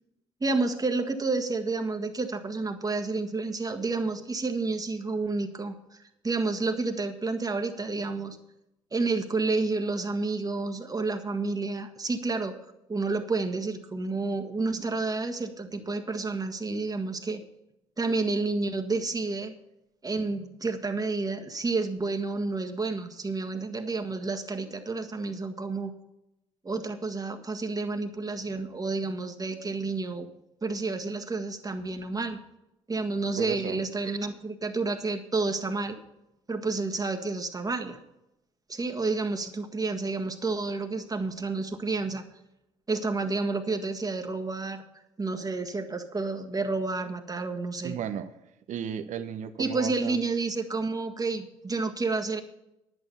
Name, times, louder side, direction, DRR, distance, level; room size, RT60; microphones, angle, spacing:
voice 1, 0.4-6.0 6.2-8.4 8.9-12.5 12.9-17.4 18.0-19.6 20.0-25.9 26.6-30.3 30.6-32.4 32.9-36.0 36.5-38.0 38.7-42.2 42.9-44.8 45.2-48.0 49.6-52.4, right 3 dB, 25° right, 5 dB, 1.7 m, -30 dB
voice 2, 33.4-33.8 47.8-48.3 48.7-50.2, right 9 dB, 55° right, 10 dB, 0.9 m, -34 dB
10.5 x 9.4 x 5.7 m, 0.87 s
hypercardioid pair, 50°, 15 cm